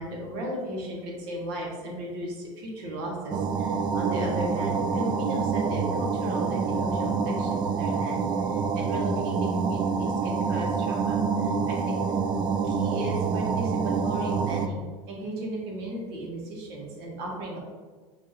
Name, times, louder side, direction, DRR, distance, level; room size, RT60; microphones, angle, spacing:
voice 1, 0.0-12.2 12.6-17.6, right 1 dB, 75° right, -2 dB, 1.5 m, -35 dB
sound 1, 3.3-14.7, right 5 dB, 35° right, 0.3 m, -27 dB
6.1 x 2.8 x 2.9 m, 1.4 s
supercardioid pair, 110°, 13 cm